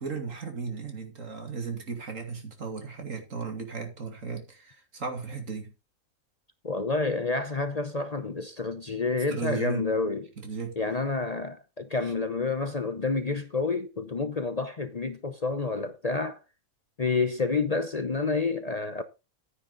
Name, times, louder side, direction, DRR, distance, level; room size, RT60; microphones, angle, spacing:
voice 1, 0.0-5.7 9.3-9.9 10.4-10.8, right 5 dB, 70° right, 2.8 m, -35 dB
voice 2, 6.6-10.3 10.8-16.4 17.0-19.0, left 3 dB, 35° left, 0.8 m, -29 dB
10.5 x 9.6 x 3.9 m
omnidirectional pair, 1.4 m